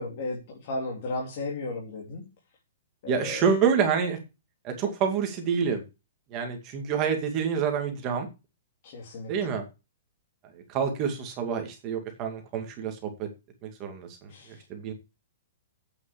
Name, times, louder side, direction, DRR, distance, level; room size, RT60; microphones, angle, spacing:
voice 1, 0.0-2.2 3.0-3.5 8.8-9.6 14.3-14.6, left 2 dB, 40° left, 3.4 m, -35 dB
voice 2, 3.1-4.2 4.6-5.8 6.3-8.3 9.3-9.6 10.7-13.3 13.6-14.3 14.7-14.9, right 6 dB, 25° right, 2.3 m, -27 dB
8.8 x 6.9 x 8.6 m
hypercardioid pair, 170°, 0 cm